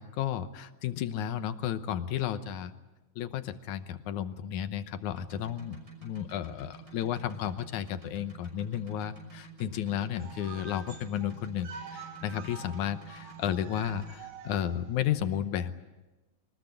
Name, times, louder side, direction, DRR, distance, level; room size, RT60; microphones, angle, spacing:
voice 1, 0.0-2.7 3.2-15.7, left 10 dB, 75° left, 11 dB, 2.3 m, -33 dB
sound 1, 5.2-14.1, right 6 dB, 25° right, 6.3 m, -49 dB
sound 2, 10.2-15.2, right 6 dB, 60° right, 3.4 m, -47 dB
24.0 x 20.0 x 8.7 m, 1.1 s
omnidirectional pair, 3.6 m